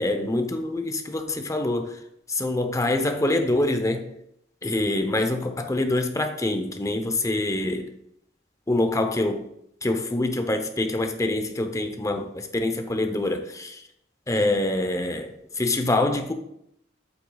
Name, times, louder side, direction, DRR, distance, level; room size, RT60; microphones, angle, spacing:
voice 1, 0.0-2.0 2.3-4.0 4.6-7.9 8.7-9.5 9.8-13.8 14.3-16.3, left 2 dB, 15° left, 0.8 m, -25 dB
8.2 x 8.1 x 2.3 m
head